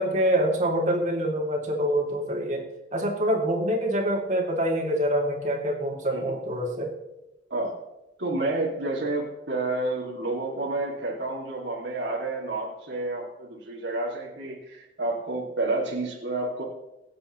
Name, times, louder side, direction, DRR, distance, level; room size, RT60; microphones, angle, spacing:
voice 1, 0.0-2.6 2.9-6.9, equal, 40° right, 0 dB, 2.3 m, -25 dB
voice 2, 8.2-16.6, right 2 dB, 75° right, -3 dB, 2.2 m, -30 dB
23.0 x 7.7 x 3.0 m, 0.92 s
head